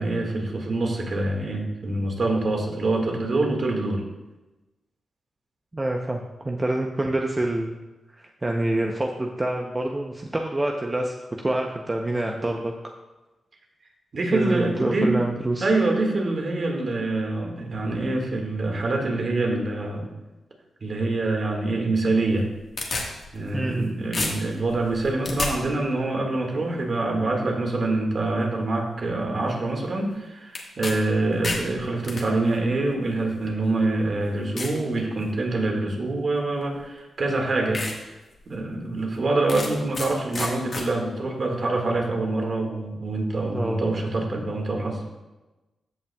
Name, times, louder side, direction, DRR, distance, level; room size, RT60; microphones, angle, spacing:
voice 1, 0.0-4.0 14.1-15.3 15.6-20.1 20.8-22.5 23.3-37.8 38.5-45.0, right 2 dB, 55° right, 1 dB, 1.8 m, -25 dB
voice 2, 5.7-7.8 8.4-12.7 14.3-15.7 23.5-23.9 43.5-44.0, right 1 dB, 25° right, 1 dB, 0.6 m, -26 dB
sound 1, 22.3-23.8 24.1-25.5 30.5-30.9 31.3-32.2 33.1-33.2 33.8-33.9 34.6-34.8 35.3-35.7 36.8-36.9 37.3-37.4 37.7-38.0 38.4-38.5 39.5-40.1 40.3-40.9, left 3 dB, 50° left, 1.5 m, -30 dB
14.0 x 5.7 x 2.3 m, 1.1 s
cardioid pair, 75°, 0 cm